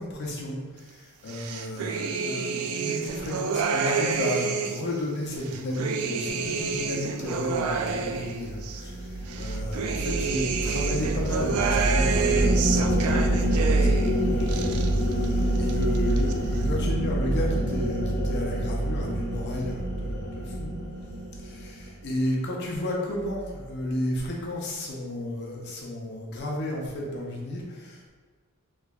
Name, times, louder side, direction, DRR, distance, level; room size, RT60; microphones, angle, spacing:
voice 1, 0.0-9.1 9.4-20.8 21.4-28.1, left 1 dB, 50° left, -1 dB, 0.6 m, -33 dB
sound 1, 1.3-4.9 5.4-8.8 9.3-14.1 14.4-15.3 15.6-16.3, right 5 dB, 75° right, 0.3 m, -29 dB
sound 2, 7.6-22.0, right 1 dB, 70° left, 1.2 m, -26 dB
3.4 x 3.0 x 2.3 m, 1.5 s
head